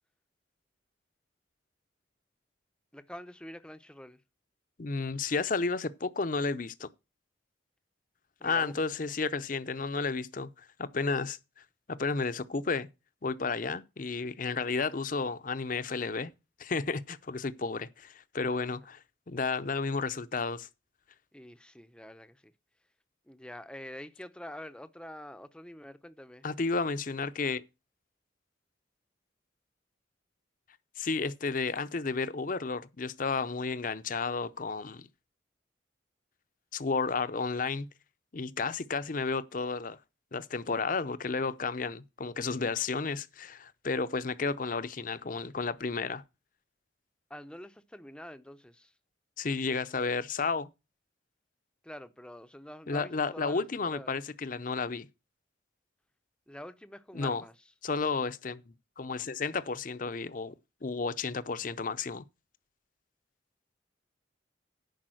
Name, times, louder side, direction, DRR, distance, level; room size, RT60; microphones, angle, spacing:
voice 1, 2.9-4.2 8.4-8.7 21.3-22.5 23.3-26.5 47.3-48.9 51.8-54.1 56.5-57.5, left 1 dB, 5° left, 0.6 m, -46 dB
voice 2, 4.8-6.9 8.4-11.4 11.9-12.9 13.2-16.3 16.6-20.7 26.4-27.6 31.0-35.1 36.7-37.9 38.3-40.0 40.3-46.2 49.4-50.7 52.9-55.1 57.1-57.4 57.8-60.5 60.8-62.2, left 4 dB, 45° left, 0.6 m, -32 dB
10.5 x 4.8 x 7.7 m
head